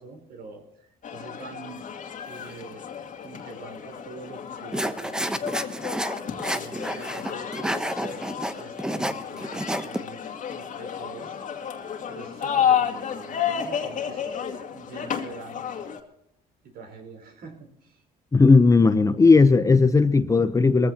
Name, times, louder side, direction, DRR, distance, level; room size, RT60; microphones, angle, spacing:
voice 1, 0.0-1.8 2.3-2.9 3.2-5.8 6.5-11.4 12.1-14.3 14.7-15.9 16.6-18.0, right 3 dB, 65° right, 4.5 m, -44 dB
sound 1, 1.0-16.0, left 8 dB, 50° left, 2.3 m, -31 dB
sound 2, 4.7-10.0, equal, 5° right, 1.0 m, -29 dB
voice 2, 18.3-20.9, left 4 dB, 20° left, 0.9 m, -16 dB
22.5 x 15.0 x 3.0 m
cardioid pair, 110°, 17 cm